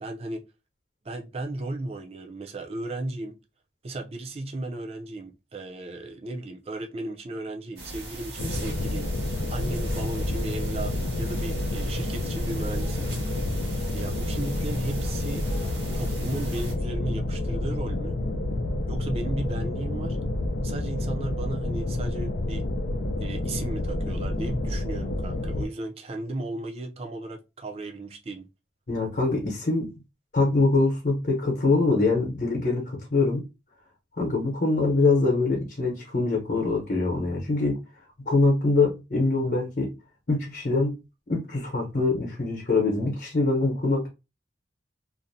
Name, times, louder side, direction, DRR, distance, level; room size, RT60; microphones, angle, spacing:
voice 1, 0.0-0.4 1.0-3.4 3.8-9.1 9.5-13.1 13.9-15.5 15.9-18.2 18.9-20.2 20.6-22.6 23.2-28.5, right 2 dB, 35° right, 0.4 m, -35 dB
sound 1, 7.8-16.7, right 1 dB, 65° right, 1.0 m, -40 dB
sound 2, 8.4-25.7, left 1 dB, 85° left, 0.4 m, -29 dB
voice 2, 28.9-29.9 30.3-33.4 34.2-37.8 38.3-39.9 40.3-40.9 41.3-44.1, left 3 dB, 55° left, 0.8 m, -24 dB
2.5 x 2.1 x 2.6 m
head